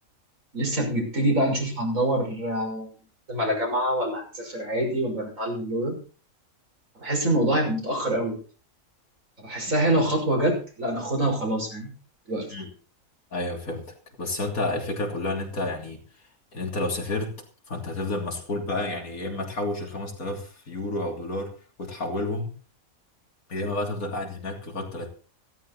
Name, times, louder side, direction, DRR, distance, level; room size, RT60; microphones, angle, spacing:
voice 1, 0.5-2.9 3.3-6.0 7.0-8.4 9.4-11.9 12.3-12.5, right 1 dB, 70° right, 1 dB, 6.7 m, -25 dB
voice 2, 13.3-16.0 16.5-17.4 17.7-21.5 21.8-22.5 23.5-25.1, left 2 dB, 85° left, 2 dB, 3.7 m, -30 dB
16.0 x 13.5 x 4.2 m, 0.39 s
omnidirectional pair, 1.5 m